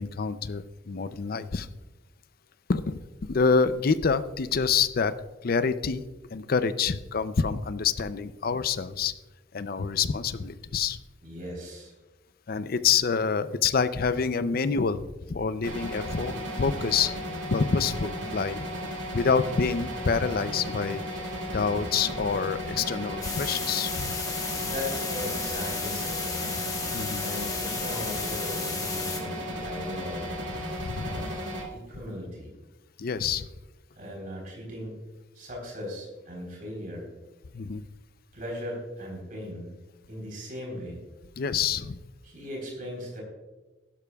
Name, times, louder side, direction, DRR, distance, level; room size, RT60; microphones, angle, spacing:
voice 1, 0.0-1.7 2.7-5.1 5.4-6.0 6.3-9.1 9.5-11.0 12.5-17.1 17.5-18.6 19.1-24.2 26.9-27.2 30.7-31.3 33.0-33.5 37.5-37.8 41.4-42.0, left 5 dB, 50° left, 13 dB, 0.5 m, -27 dB
voice 2, 11.2-11.9 24.6-26.8 27.1-30.4 31.0-31.4 31.7-32.6 34.0-35.0 35.3-37.1 38.3-39.7 40.1-41.0 42.2-43.2, left 1 dB, 50° right, -1 dB, 3.7 m, -38 dB
sound 1, 15.6-31.6, equal, 80° right, 2.3 m, -35 dB
sound 2, 23.2-29.2, left 4 dB, 20° left, 1.3 m, -33 dB
15.5 x 12.0 x 2.3 m, 1.1 s
head